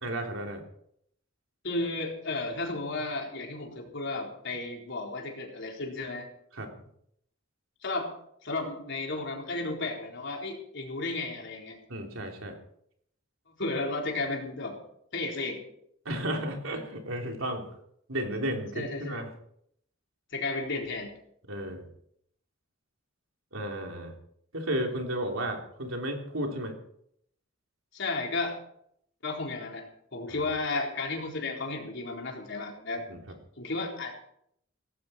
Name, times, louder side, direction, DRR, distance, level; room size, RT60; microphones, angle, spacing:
voice 1, 0.0-0.6 6.5-6.7 11.9-12.5 16.0-17.7 18.1-19.3 21.5-21.8 23.5-24.2 24.5-26.8 30.3-30.4 33.1-33.2, right 1 dB, 75° right, 2 dB, 3.4 m, -33 dB
voice 2, 1.6-6.3 7.8-8.1 8.4-11.8 13.5-14.8 15.1-15.6 18.7-19.2 20.3-21.1 27.9-28.6 29.2-33.0 33.6-34.1, left 3 dB, 60° left, 0 dB, 4.1 m, -33 dB
18.0 x 15.5 x 4.4 m, 0.70 s
head